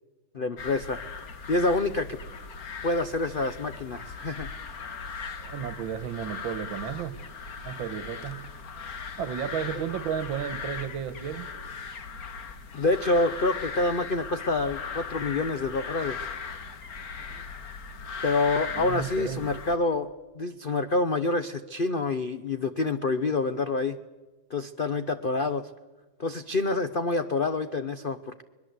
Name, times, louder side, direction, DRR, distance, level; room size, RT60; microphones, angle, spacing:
voice 1, 0.3-1.0 1.5-2.2 2.8-4.5 12.7-16.3 18.2-24.0 24.5-25.7 26.2-28.4, left 3 dB, 70° left, 10 dB, 0.5 m, -27 dB
sound 1, 0.6-19.8, left 5 dB, 50° left, 1.8 m, -38 dB
voice 2, 5.4-7.2 7.7-8.5 9.2-11.5 17.2-17.4 18.7-19.5, right 9 dB, 80° right, 14 dB, 1.9 m, -33 dB
22.5 x 21.0 x 8.1 m, 1.2 s
omnidirectional pair, 2.1 m